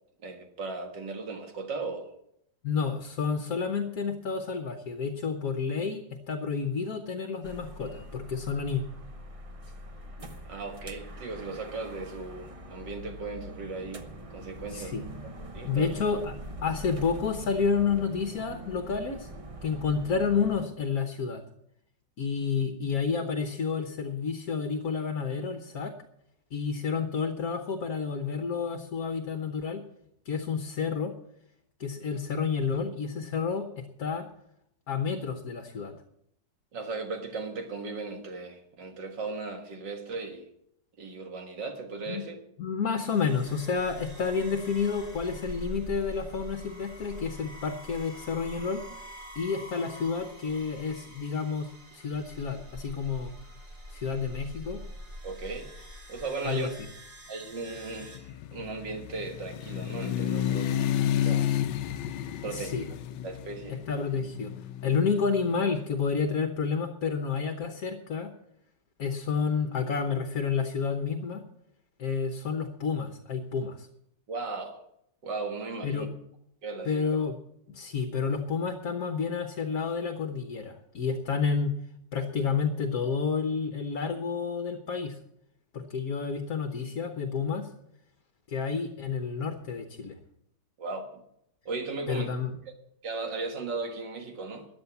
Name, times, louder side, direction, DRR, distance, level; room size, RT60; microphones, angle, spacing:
voice 1, 0.2-2.1 10.5-14.1 14.3-15.0 15.5-15.9 36.7-40.4 41.0-42.4 55.2-55.7 56.1-56.7 57.3-58.2 58.5-60.8 61.0-61.5 62.4-62.9 63.2-63.8 74.3-74.8 75.2-76.1 76.6-77.1 90.8-91.2 91.7-92.3 93.0-94.7, right 3 dB, 75° right, 5 dB, 2.3 m, -37 dB
voice 2, 2.6-8.8 14.7-15.0 15.6-19.3 19.6-21.4 22.2-25.9 26.5-29.8 30.2-31.1 31.8-34.3 34.9-36.0 42.1-42.2 42.6-48.8 49.3-53.3 53.9-54.8 56.4-56.9 62.4-62.8 63.7-64.5 64.8-68.3 69.0-71.4 72.0-73.9 75.8-76.1 76.8-77.4 77.7-81.8 82.1-85.2 85.7-87.7 88.5-90.2 92.1-92.5, left 5 dB, 55° left, 7 dB, 1.4 m, -30 dB
sound 1, 7.4-20.6, right 1 dB, 25° right, 0.8 m, -43 dB
sound 2, 43.1-58.2, equal, 45° right, 3.5 m, -45 dB
sound 3, 57.8-65.8, left 10 dB, 75° left, 1.3 m, -31 dB
14.0 x 9.6 x 7.1 m, 0.75 s
omnidirectional pair, 1.9 m